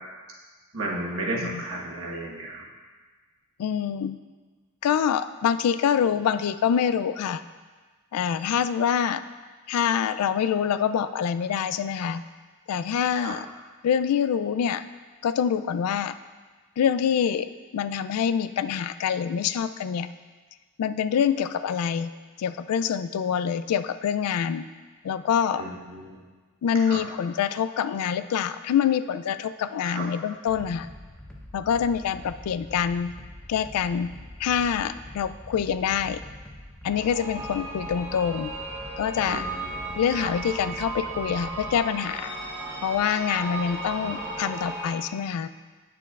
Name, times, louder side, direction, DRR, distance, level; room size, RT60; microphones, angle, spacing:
voice 1, 0.7-2.6 13.2-13.3 25.6-26.2 26.9-27.0 29.8-30.1 39.3-39.9 40.2-40.3 44.0-44.5, right 2 dB, 65° right, -3 dB, 1.2 m, -34 dB
voice 2, 3.6-4.2 4.8-7.4 8.1-9.2 9.7-12.2 12.7-13.5 13.8-14.8 15.2-16.1 16.8-20.1 20.8-22.1 22.4-24.7 25.0-25.6 26.6-30.9 31.5-33.1 33.5-34.1 34.4-36.2 36.8-38.5 39.0-39.4 40.0-42.3 42.8-45.5, left 8 dB, 90° left, 15 dB, 0.3 m, -25 dB
sound 1, 30.5-41.7, left 1 dB, 5° left, 0.6 m, -44 dB
sound 2, 36.9-44.9, right 2 dB, 10° right, 1.2 m, -35 dB
9.0 x 6.8 x 2.4 m, 1.4 s
head